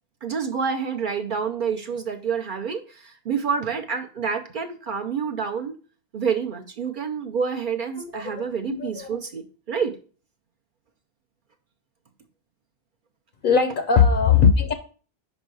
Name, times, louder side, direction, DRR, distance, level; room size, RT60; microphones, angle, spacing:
voice 1, 0.2-5.7 6.1-9.9, right 6 dB, 60° right, 0.7 m, -28 dB
voice 2, 8.0-9.2 13.4-14.7, left 6 dB, 60° left, 0.7 m, -20 dB
5.2 x 5.2 x 4.7 m
omnidirectional pair, 1.1 m